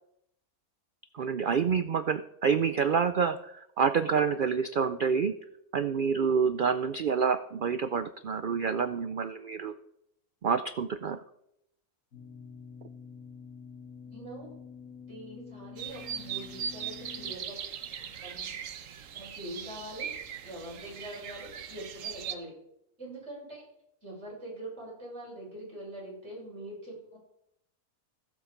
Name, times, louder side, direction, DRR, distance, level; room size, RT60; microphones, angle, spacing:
voice 1, 1.1-5.3 5.7-9.7 10.4-11.2, right 6 dB, 85° right, 11 dB, 0.4 m, -28 dB
sound 1, 12.1-17.3, left 6 dB, 80° left, 3.2 m, -47 dB
voice 2, 14.0-14.5 15.1-17.6 17.8-18.5 19.1-20.1 20.4-22.5 23.0-23.6 24.0-27.3, right 1 dB, 45° right, -5 dB, 6.8 m, -43 dB
sound 2, 15.8-22.3, right 8 dB, 60° right, 1.2 m, -39 dB
15.5 x 7.7 x 5.1 m, 0.80 s
omnidirectional pair, 1.6 m